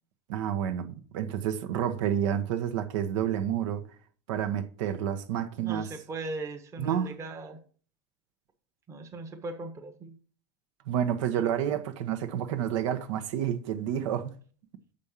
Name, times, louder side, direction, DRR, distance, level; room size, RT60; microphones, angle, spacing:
voice 1, 0.3-3.8 4.3-5.9 6.8-7.1 10.9-14.3, right 9 dB, 80° right, 1.1 m, -29 dB
voice 2, 5.6-7.6 8.9-10.1 11.4-11.5, right 3 dB, 20° right, 1.0 m, -39 dB
6.9 x 5.3 x 7.2 m
cardioid pair, 165°, 16 cm